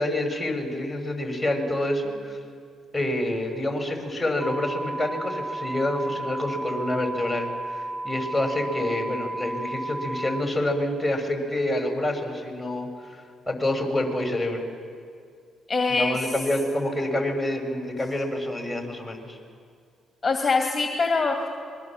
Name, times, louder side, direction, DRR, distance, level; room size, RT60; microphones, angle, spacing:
voice 1, 0.0-2.4 2.9-7.5 7.7-14.6 15.9-19.4, left 1 dB, 5° left, 3 dB, 5.9 m, -27 dB
sound 1, 4.4-10.4, right 2 dB, 20° right, 1.8 m, -33 dB
voice 2, 15.7-16.3 20.2-21.5, left 3 dB, 30° left, 3 dB, 2.7 m, -23 dB
26.5 x 22.0 x 7.4 m, 2.2 s
supercardioid pair, 55°, 0 cm